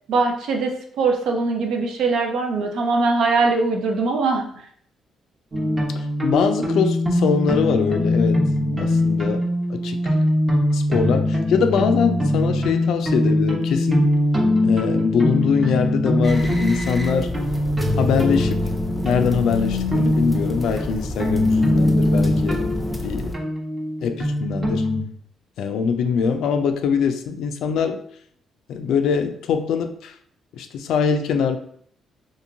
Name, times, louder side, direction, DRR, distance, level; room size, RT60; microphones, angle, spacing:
voice 1, 0.1-4.5, right 3 dB, 80° right, 3 dB, 0.5 m, -21 dB
sound 1, 5.5-25.0, left 1 dB, 25° right, 0.8 m, -22 dB
voice 2, 6.2-8.4 8.8-9.4 9.7-10.0 10.7-14.1 14.6-17.3 18.0-18.6 19.0-22.7 23.0-23.3 24.0-24.9 25.6-28.0 28.7-30.1 30.5-31.6, left 6 dB, 80° left, 7 dB, 0.3 m, -23 dB
sound 2, 16.2-23.3, left 1 dB, 5° left, 0.6 m, -31 dB
2.8 x 2.5 x 2.6 m, 0.63 s
cardioid pair, 90°, 0 cm